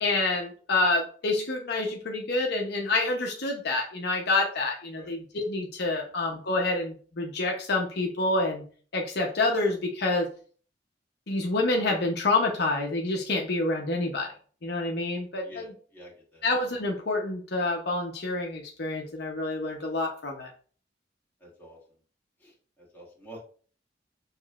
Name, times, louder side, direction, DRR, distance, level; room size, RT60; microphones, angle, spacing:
voice 1, 0.0-8.6 8.9-10.3 11.3-14.3 14.6-15.7 16.4-20.5, left 2 dB, 65° left, 0 dB, 0.8 m, -27 dB
voice 2, 15.4-16.5 21.4-21.8 22.4-23.4, equal, 10° left, -4 dB, 1.8 m, -48 dB
6.8 x 3.2 x 2.4 m, 0.43 s
head